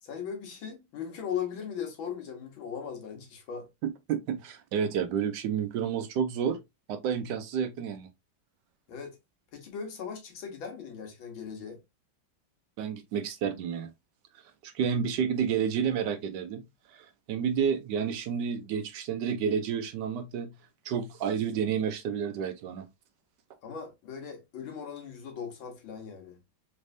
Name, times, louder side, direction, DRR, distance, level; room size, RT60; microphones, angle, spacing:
voice 1, 0.0-3.7 8.9-9.2 9.5-11.8 23.6-26.4, left 7 dB, 85° left, 2.0 m, -38 dB
voice 2, 3.8-6.6 6.9-8.1 12.8-13.9 14.6-16.6 16.9-20.5 20.8-22.9, right 7 dB, 75° right, 1.1 m, -30 dB
4.2 x 3.3 x 2.5 m
omnidirectional pair, 2.1 m